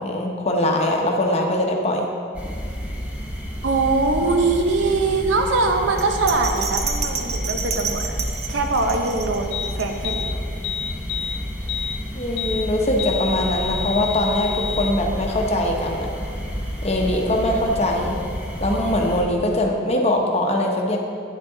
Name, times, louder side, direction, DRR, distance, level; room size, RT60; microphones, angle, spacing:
voice 1, 0.0-2.1 12.1-16.1 16.8-18.2 18.6-21.0, left 1 dB, 35° left, 1 dB, 0.8 m, -22 dB
sound 1, 2.3-19.2, equal, 5° right, 0.8 m, -31 dB
voice 2, 3.6-8.2 8.5-10.4, right 3 dB, 85° right, 4 dB, 0.7 m, -22 dB
Bell, 6.0-10.3 10.7-10.8, right 5 dB, 35° right, 0.4 m, -29 dB
sound 2, 9.5-9.7 10.0-10.3 10.6-11.4 11.7-12.0 12.4-12.6 13.0-14.9, left 6 dB, 60° left, 0.3 m, -29 dB
9.1 x 6.1 x 3.9 m, 2.4 s
head